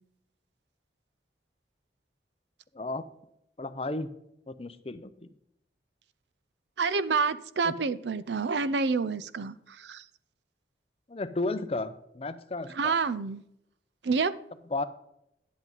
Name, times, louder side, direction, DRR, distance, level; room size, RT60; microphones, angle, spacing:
voice 1, 3.6-4.1 4.5-5.1 7.7-7.8 11.1-13.0 14.7-14.8, left 2 dB, 35° left, 11 dB, 0.6 m, -33 dB
voice 2, 6.8-10.0 12.7-13.4 14.0-14.3, right 4 dB, 75° right, 15 dB, 0.5 m, -28 dB
10.5 x 8.2 x 3.9 m, 0.79 s
head